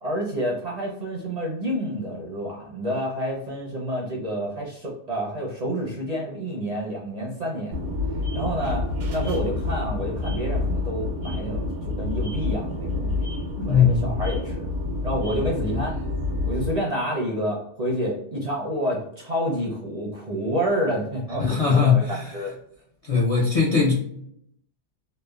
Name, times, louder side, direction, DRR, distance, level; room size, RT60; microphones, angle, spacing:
voice 1, 0.0-7.8 8.3-8.9 9.1-11.7 12.0-13.3 13.7-14.7 15.0-16.0 16.4-22.0 22.3-22.5, equal, 50° right, -2 dB, 0.5 m, -28 dB
sound 1, 7.7-16.8, left 2 dB, 90° right, 1.0 m, -28 dB
voice 2, 13.6-14.1 21.4-22.2 23.0-23.9, left 6 dB, 55° left, -4 dB, 0.4 m, -20 dB
3.0 x 2.1 x 2.2 m, 0.71 s
omnidirectional pair, 1.2 m